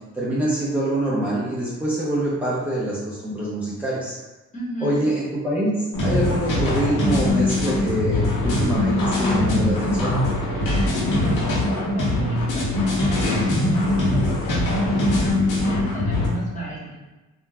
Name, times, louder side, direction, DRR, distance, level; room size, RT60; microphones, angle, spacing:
voice 1, 0.1-4.1 4.8-10.2, right 1 dB, 5° right, -9 dB, 0.6 m, -25 dB
voice 2, 4.5-4.9 11.2-17.0, right 2 dB, 25° left, -5 dB, 1.1 m, -33 dB
sound 1, 5.9-16.3, left 1 dB, 90° left, 0.9 m, -22 dB
3.7 x 2.2 x 2.3 m, 1.1 s
cardioid pair, 90°, 30 cm